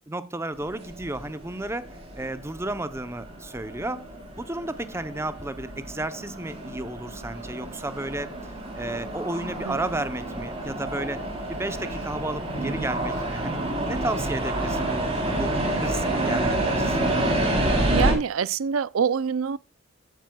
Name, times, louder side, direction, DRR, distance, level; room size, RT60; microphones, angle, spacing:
voice 1, 0.1-1.9 2.2-4.1 4.4-8.3 8.8-11.2 11.5-13.6 13.9-17.3, right 2 dB, 10° right, 0.7 m, -33 dB
sound 1, 0.6-18.1, right 1 dB, 30° right, 3.4 m, -29 dB
voice 2, 17.9-19.6, right 6 dB, 75° right, 0.5 m, -25 dB
17.0 x 9.4 x 2.3 m
head